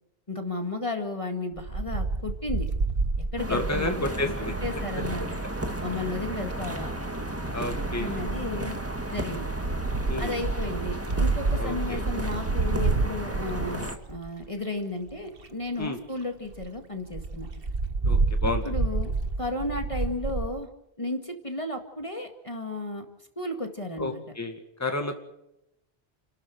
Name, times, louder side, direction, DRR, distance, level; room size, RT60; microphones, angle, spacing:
voice 1, 0.3-2.7 3.2-5.3 5.8-6.9 7.9-8.8 9.1-9.5 10.2-17.5 18.6-19.1 19.4-20.7 21.0-23.1 23.4-24.2, left 2 dB, 30° left, 4 dB, 2.1 m, -33 dB
Wind, 1.6-5.2 6.3-6.8 7.5-14.5 15.1-15.2 15.4-15.5 15.8-15.9 16.2-16.3 16.5-16.7 17.1-20.5, right 3 dB, 60° right, 1.6 m, -29 dB
sound 1, 3.4-14.0, right 1 dB, 15° right, 1.8 m, -33 dB
voice 2, 3.5-4.5 7.5-8.2 10.1-10.3 11.6-12.0 15.8-16.0 18.0-18.8 24.0-25.2, left 2 dB, 15° left, 4 dB, 2.1 m, -31 dB
30.0 x 13.0 x 7.9 m, 0.84 s
omnidirectional pair, 1.1 m